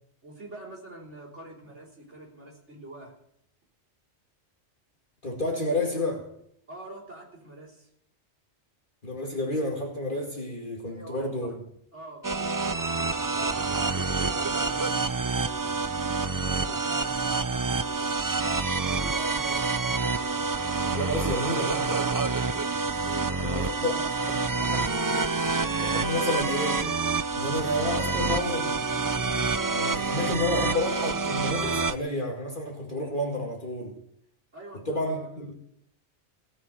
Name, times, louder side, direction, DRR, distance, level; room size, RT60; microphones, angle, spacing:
voice 1, 0.2-3.2 6.7-7.9 10.8-11.6 11.9-18.1 18.6-19.8 23.0-25.0 34.5-35.3, right 1 dB, 90° right, -3 dB, 4.4 m, -45 dB
voice 2, 5.2-6.2 9.0-11.5 20.9-22.1 23.4-23.9 24.7-24.8 25.8-26.9 27.3-28.8 29.6-34.0 34.9-35.5, left 1 dB, 45° left, 0 dB, 2.5 m, -30 dB
sound 1, 12.2-31.9, right 4 dB, 30° right, 0.4 m, -27 dB
17.5 x 7.6 x 9.1 m, 0.70 s
omnidirectional pair, 1.2 m